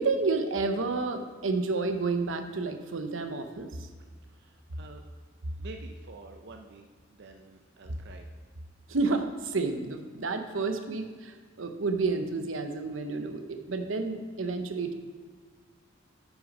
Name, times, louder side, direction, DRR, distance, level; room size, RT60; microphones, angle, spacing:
voice 1, 0.0-3.9 8.9-14.9, right 3 dB, 85° right, 7 dB, 0.8 m, -30 dB
voice 2, 4.3-5.0 5.6-8.3, right 3 dB, 60° right, 4 dB, 0.6 m, -48 dB
9.1 x 6.0 x 5.3 m, 1.5 s
head